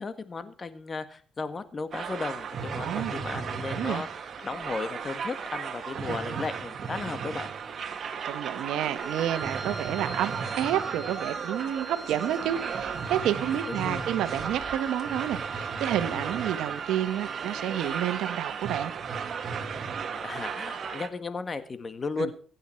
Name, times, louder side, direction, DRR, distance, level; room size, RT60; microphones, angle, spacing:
voice 1, 0.0-7.5 13.5-14.1 16.1-16.3 20.1-22.3, left 4 dB, 35° left, 11 dB, 1.7 m, -35 dB
sound 1, 1.9-21.1, right 6 dB, 55° right, 1.8 m, -35 dB
voice 2, 2.8-3.1 3.7-4.0 6.1-6.4 8.2-18.9 22.2-22.3, right 11 dB, 85° right, 12 dB, 1.2 m, -30 dB
Wind instrument woodwind instrument, 9.0-18.2, right 3 dB, 5° left, 6.8 m, -41 dB
24.0 x 9.1 x 4.5 m, 0.42 s
cardioid pair, 90°, 0 cm